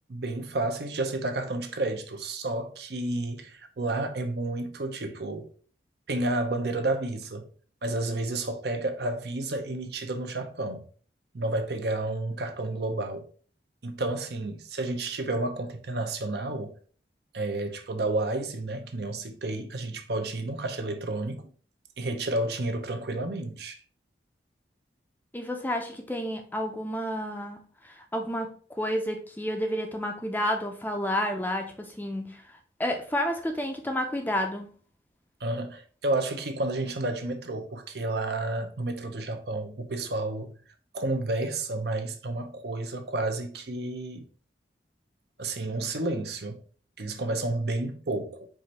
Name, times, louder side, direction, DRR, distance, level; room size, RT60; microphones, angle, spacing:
voice 1, 0.1-5.5 6.1-7.5 7.8-10.9 11.3-13.3 13.8-16.7 17.3-21.5 22.0-23.8 35.4-40.6 40.9-44.3 45.4-46.6 47.0-48.5, right 2 dB, 60° right, 0.7 m, -31 dB
voice 2, 25.3-32.4 32.8-34.7, equal, 10° left, 0.5 m, -30 dB
4.8 x 2.6 x 4.2 m
head